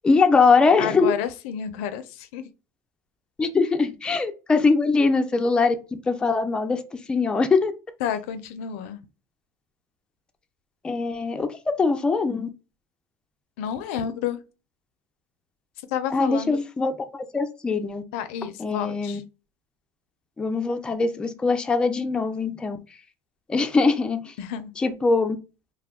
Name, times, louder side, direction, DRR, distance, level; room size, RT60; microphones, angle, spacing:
voice 1, 0.0-1.1 3.4-6.8 7.1-7.7 10.8-12.5 16.1-18.0 18.6-19.2 20.4-22.8 23.5-24.3 24.8-25.4, left 4 dB, 15° left, 0.3 m, -22 dB
voice 2, 0.8-2.5 8.0-9.0 13.6-14.4 15.9-16.6 18.1-19.2 24.4-24.7, left 9 dB, 80° left, 0.4 m, -30 dB
2.2 x 2.1 x 3.4 m
supercardioid pair, 120°, 7 cm